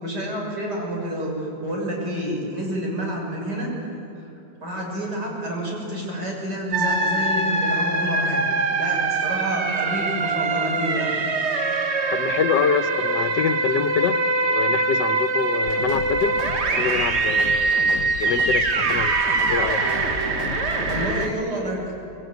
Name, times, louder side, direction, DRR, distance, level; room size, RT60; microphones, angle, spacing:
voice 1, 0.0-3.7 4.6-11.2 20.8-21.9, equal, 75° right, -2 dB, 7.3 m, -29 dB
sound 1, 6.7-21.3, right 3 dB, 40° right, 1.5 m, -23 dB
voice 2, 12.1-19.9, left 7 dB, 85° left, 9 dB, 1.6 m, -26 dB
sound 2, 15.7-21.3, left 9 dB, 65° left, 1.1 m, -34 dB
26.5 x 21.5 x 9.4 m, 2.9 s
omnidirectional pair, 1.8 m